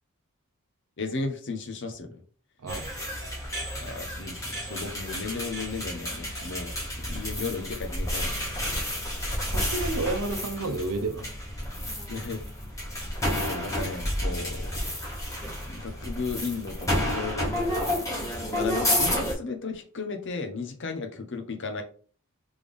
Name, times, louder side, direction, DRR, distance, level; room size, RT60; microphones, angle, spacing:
voice 1, 1.0-2.2 3.8-8.5 12.1-12.4 12.8-13.1 13.3-14.9 15.7-17.9 18.5-21.8, left 4 dB, 55° left, 5 dB, 0.8 m, -35 dB
sound 1, 2.7-19.3, left 1 dB, 15° left, 1.3 m, -31 dB
voice 2, 9.4-11.2, right 2 dB, 75° right, 7 dB, 0.7 m, -30 dB
3.6 x 3.4 x 3.5 m, 0.44 s
head